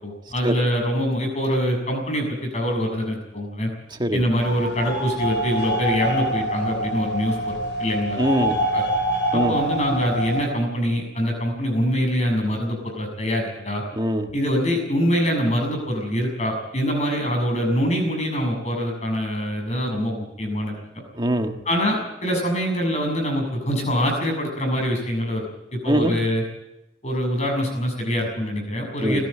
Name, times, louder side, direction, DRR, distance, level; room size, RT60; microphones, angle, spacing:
voice 1, 0.0-3.7 4.1-7.5 7.8-8.2 8.7-8.8 9.3-13.8 14.3-21.0 21.6-25.4 25.7-26.4 27.0-29.2, equal, 40° left, 2 dB, 6.8 m, -24 dB
sound 1, 4.3-10.5, right 1 dB, 80° left, 6.6 m, -25 dB
voice 2, 8.2-8.5 9.3-9.5 14.0-14.3 21.2-21.6 25.9-26.1 29.0-29.2, right 1 dB, 25° right, 5 dB, 1.6 m, -22 dB
20.0 x 15.0 x 8.7 m, 0.90 s
head